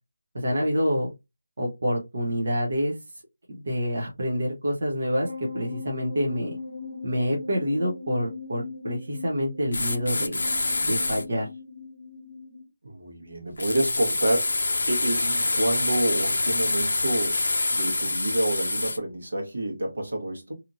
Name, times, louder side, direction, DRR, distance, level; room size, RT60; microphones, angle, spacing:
voice 1, 0.3-1.1 1.6-2.9 3.5-5.3 5.5-6.6 7.0-10.4 10.8-11.5, equal, 50° right, 0.8 m, -27 dB
sound 1, 5.2-12.6, left 4 dB, 15° right, 0.8 m, -39 dB
sound 2, 9.7-11.2 13.6-19.0, left 2 dB, 70° left, 0.5 m, -26 dB
voice 2, 12.8-17.4 17.7-20.5, right 1 dB, 70° right, 1.3 m, -28 dB
2.8 x 2.5 x 2.6 m
figure-of-eight pair, 175°, 0 cm